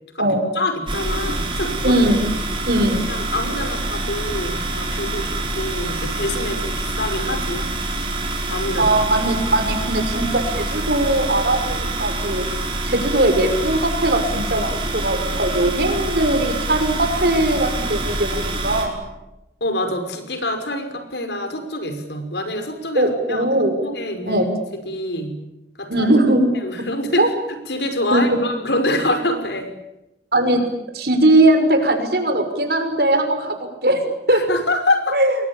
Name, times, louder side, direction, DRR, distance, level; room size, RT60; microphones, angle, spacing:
voice 1, 0.5-2.0 3.1-7.7 8.5-8.9 19.6-23.4 23.8-24.4 24.8-25.4 25.8-26.1 26.5-27.3 27.7-29.7 34.3-35.2, left 1 dB, 75° left, 7 dB, 5.6 m, -25 dB
sound 1, 0.9-18.9, right 2 dB, 30° right, 5.9 m, -26 dB
voice 2, 1.8-2.3 2.7-3.1 8.8-12.5 12.9-19.0 22.9-23.8 24.3-24.5 25.9-26.5 26.8-26.9 27.2-27.3 28.1-28.4 30.3-30.7 30.9-33.6 33.8-34.0 34.3-34.4 35.1-35.3, right 1 dB, 60° right, 6 dB, 6.0 m, -19 dB
29.0 x 22.5 x 8.8 m, 0.94 s
head